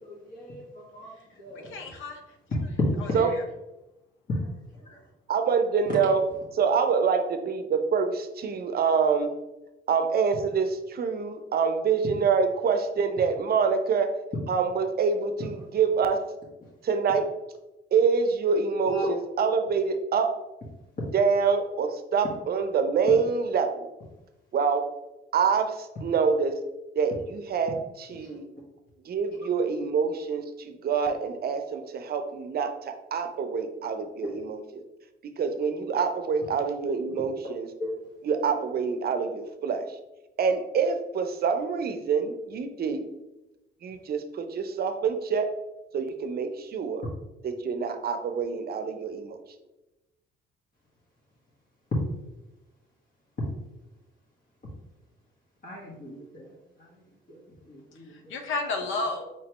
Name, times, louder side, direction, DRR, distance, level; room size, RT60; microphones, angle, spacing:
voice 1, 0.0-1.8 2.8-3.4 4.3-4.5 5.8-5.9 18.8-19.1 28.2-28.3 34.2-34.3 37.8-37.9 55.6-56.5 56.8-57.0 57.3-57.4 57.7-58.1, left 1 dB, 45° left, -4 dB, 1.3 m, -33 dB
voice 2, 1.5-2.2 3.0-3.1 58.1-59.2, left 3 dB, 80° left, 5 dB, 0.6 m, -32 dB
voice 3, 5.3-6.2 6.5-9.3 9.9-14.1 14.5-16.2 16.8-17.3 17.9-20.3 21.1-23.9 24.5-24.8 25.3-26.5 27.0-28.5 29.1-34.6 35.4-37.7 38.2-39.9 40.4-43.1 43.8-45.5 45.9-47.0 47.4-49.4, right 5 dB, 50° right, 7 dB, 0.6 m, -26 dB
4.7 x 3.0 x 2.9 m, 0.99 s
cardioid pair, 90°, 20 cm